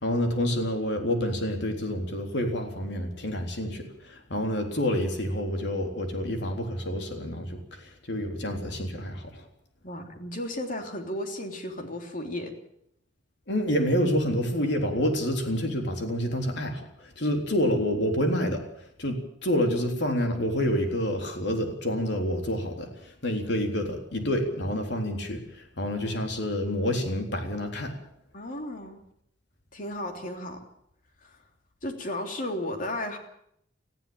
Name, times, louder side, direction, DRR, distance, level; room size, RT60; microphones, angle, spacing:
voice 1, 0.0-9.4 13.5-18.7 19.0-27.9, equal, 65° left, 4 dB, 3.7 m, -28 dB
voice 2, 9.8-12.5 28.3-29.0 29.7-30.6 31.2-31.4 31.8-33.2, left 1 dB, 45° left, 4 dB, 3.2 m, -34 dB
19.5 x 15.0 x 8.9 m, 0.73 s
head